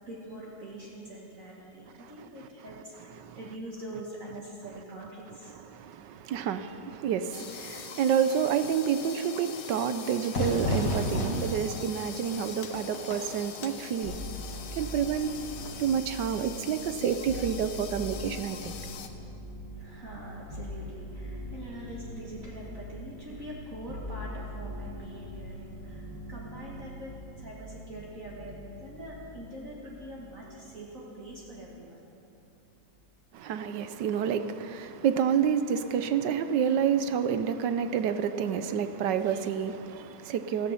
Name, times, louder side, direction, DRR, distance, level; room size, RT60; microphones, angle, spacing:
voice 1, 0.0-5.5 19.7-32.0, right 1 dB, 45° right, 2.0 m, -44 dB
voice 2, 5.5-14.2 14.7-15.3 15.8-18.7 33.3-40.7, right 8 dB, 75° right, 1.3 m, -29 dB
sound 1, 7.3-19.1, left 7 dB, 70° left, 1.5 m, -43 dB
Fire / Fireworks, 10.3-15.9, left 1 dB, 50° left, 2.2 m, -34 dB
sound 2, 14.0-31.5 31.8-32.6, equal, 20° right, 2.0 m, -42 dB
15.5 x 14.0 x 5.7 m
omnidirectional pair, 2.0 m